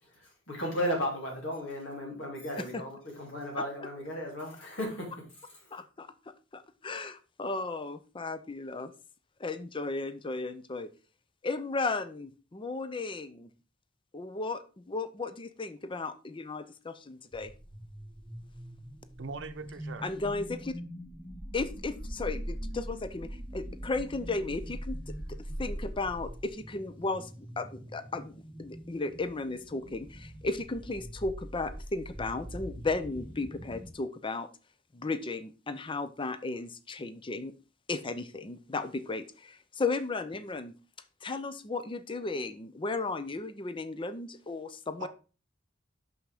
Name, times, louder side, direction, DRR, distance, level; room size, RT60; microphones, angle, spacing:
voice 1, 0.0-5.1 5.5-5.8, equal, 70° left, 3.3 m, -35 dB
voice 2, 5.7-6.1 6.5-8.9 9.4-10.9 11.4-13.5 14.1-17.5 20.0-20.7 21.5-27.3 27.6-34.5 34.9-37.5 37.9-40.7 41.2-45.1, left 3 dB, 25° left, 0.6 m, -35 dB
sound 1, 17.3-33.9, equal, 10° right, 1.3 m, -42 dB
voice 3, 19.2-20.1 45.0-45.1, right 4 dB, 70° right, 0.7 m, -41 dB
6.2 x 5.8 x 4.9 m
head